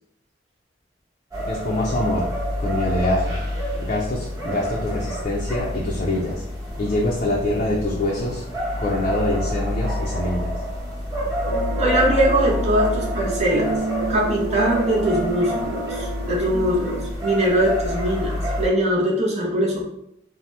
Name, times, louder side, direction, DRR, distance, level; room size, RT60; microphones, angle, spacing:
sound 1, 1.3-18.7, equal, 20° right, 0.9 m, -28 dB
voice 1, 1.5-2.3 2.6-3.4 3.8-6.4 6.8-8.5 8.8-10.5, left 1 dB, 40° left, -4 dB, 0.4 m, -25 dB
sound 2, 11.5-17.1, right 2 dB, 85° right, 0.7 m, -30 dB
voice 2, 11.8-13.7 14.1-16.9 17.2-19.8, equal, 35° right, -3 dB, 0.6 m, -21 dB
2.8 x 2.0 x 3.2 m, 0.79 s
head